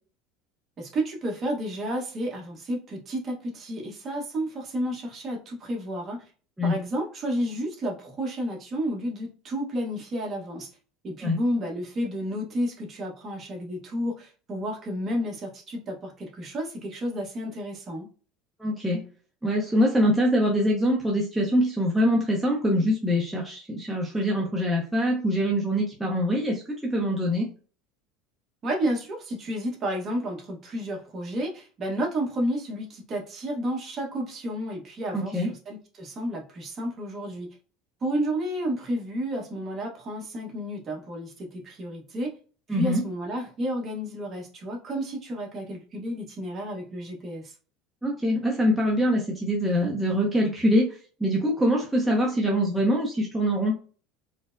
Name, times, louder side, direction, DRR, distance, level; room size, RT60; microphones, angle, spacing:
voice 1, 0.8-6.2 6.6-10.7 11.0-18.1 28.6-37.5 38.0-42.3 42.7-47.5, equal, 30° right, 1 dB, 1.0 m, -31 dB
voice 2, 18.6-19.0 19.4-27.5 35.1-35.5 42.7-43.0 48.0-50.9 51.2-53.8, equal, 5° right, -3 dB, 0.7 m, -24 dB
4.3 x 2.0 x 2.5 m, 0.38 s
cardioid pair, 140°, 0 cm